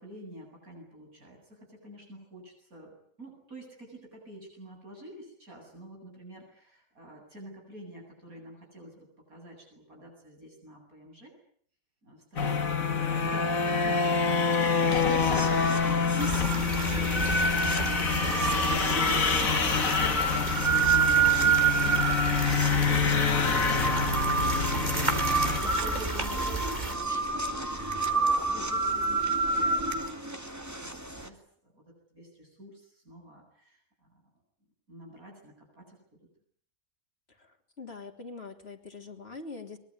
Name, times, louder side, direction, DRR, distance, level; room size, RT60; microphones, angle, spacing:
voice 1, 0.0-11.3 12.0-30.9 31.2-31.8 32.1-33.8 34.1-34.2 34.9-36.0, right 1 dB, 90° right, 1 dB, 8.6 m, -47 dB
sound 1, 12.4-25.6, left 5 dB, 75° left, 2.2 m, -27 dB
sound 2, 14.9-31.3, right 4 dB, 10° right, 2.4 m, -29 dB
sound 3, 16.2-27.0, right 2 dB, 30° right, 3.1 m, -34 dB
voice 2, 37.4-39.8, left 4 dB, 45° left, 3 dB, 3.7 m, -43 dB
24.0 x 22.5 x 9.8 m, 0.63 s
omnidirectional pair, 1.5 m